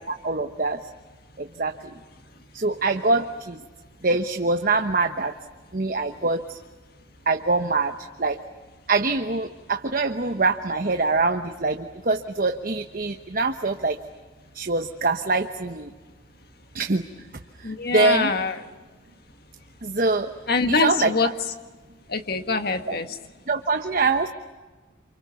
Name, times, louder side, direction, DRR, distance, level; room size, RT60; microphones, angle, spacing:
voice 1, 0.1-0.8 1.4-1.9 2.5-3.6 4.0-5.3 5.7-6.5 7.3-7.9 8.2-8.4 8.9-14.0 14.5-15.9 16.7-17.0 17.6-18.3 19.8-20.3 20.8-21.1 22.9-23.0 23.5-24.3, right 3 dB, 45° right, 6 dB, 1.1 m, -24 dB
voice 2, 17.6-18.6 20.5-21.3 22.1-23.2, left 4 dB, 50° left, 7 dB, 1.8 m, -24 dB
29.5 x 27.5 x 7.0 m, 1.3 s
head